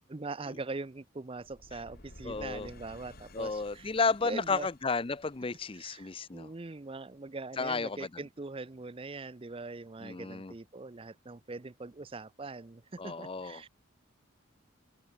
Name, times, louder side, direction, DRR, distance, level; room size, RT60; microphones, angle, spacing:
voice 1, 0.1-4.7 5.7-13.7, right 3 dB, 25° right, 0.5 m, -42 dB
sound 1, 1.4-6.4, left 1 dB, 45° left, 3.5 m, -54 dB
voice 2, 2.2-2.7 3.3-6.5 7.6-8.0 10.0-10.5 13.0-13.6, left 4 dB, 25° left, 0.5 m, -32 dB
head